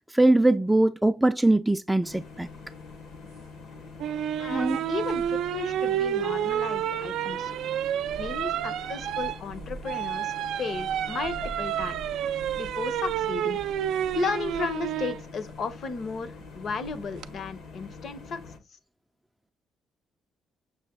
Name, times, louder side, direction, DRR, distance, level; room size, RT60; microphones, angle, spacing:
voice 1, 0.1-2.5 4.5-4.8, right 2 dB, 5° right, 0.3 m, -22 dB
sound 1, 2.0-18.6, left 4 dB, 80° left, 1.1 m, -45 dB
sound 2, 4.0-15.2 16.9-17.3, right 10 dB, 80° right, 0.3 m, -30 dB
voice 2, 4.4-7.6 8.2-12.0 12.6-13.6 14.1-18.4, left 4 dB, 60° left, 0.8 m, -34 dB
6.3 x 2.2 x 3.6 m
cardioid pair, 90°, 0 cm